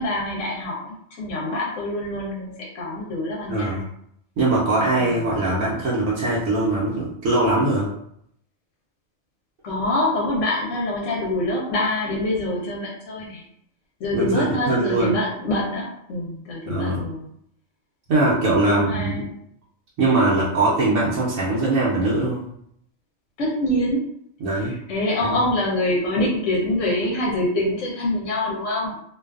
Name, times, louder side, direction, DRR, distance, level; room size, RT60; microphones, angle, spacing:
voice 1, 0.0-3.8 5.0-5.4 9.6-13.4 14.0-17.3 18.4-19.4 23.4-24.1 24.6-29.0, left 1 dB, 70° left, -3 dB, 0.9 m, -25 dB
voice 2, 3.5-3.8 4.4-7.9 14.1-15.1 16.7-17.0 18.1-19.3 20.0-22.4 24.4-24.8 25.2-25.4, right 2 dB, 80° right, -8 dB, 1.1 m, -21 dB
2.5 x 2.3 x 2.3 m, 0.71 s
omnidirectional pair, 1.4 m